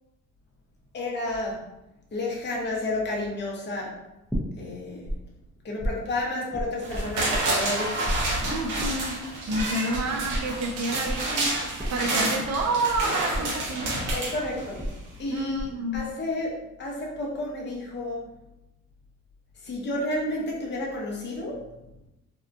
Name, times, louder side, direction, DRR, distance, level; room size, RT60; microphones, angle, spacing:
voice 1, 0.9-1.7 2.1-3.9 4.6-5.2 5.6-8.0 14.1-14.9 15.2-18.3 19.6-21.6, left 1 dB, 35° left, -3 dB, 0.7 m, -31 dB
sound 1, 4.3-5.2 5.4-7.8 8.0-15.7 15.9-16.5, equal, ahead, 0.6 m, -33 dB
sound 2, 6.8-15.0 15.4-15.5, right 2 dB, 75° right, 0.9 m, -29 dB
voice 2, 8.5-9.2 9.5-11.6 11.9-13.9 15.3-16.1, right 2 dB, 60° right, 3 dB, 0.5 m, -29 dB
2.8 x 2.2 x 2.5 m, 0.92 s
cardioid pair, 90°, 30 cm